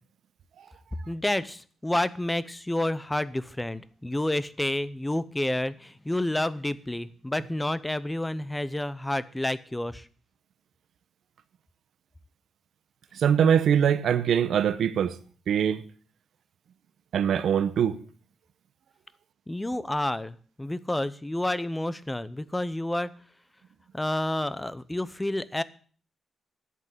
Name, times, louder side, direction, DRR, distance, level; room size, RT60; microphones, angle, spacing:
voice 1, 1.1-10.1 19.5-23.1 23.9-25.6, left 1 dB, 10° left, 0.7 m, -29 dB
voice 2, 13.2-15.1 15.5-15.8 17.1-18.0, right 8 dB, 70° right, 0.9 m, -22 dB
11.0 x 8.1 x 7.9 m
cardioid pair, 115°, 0 cm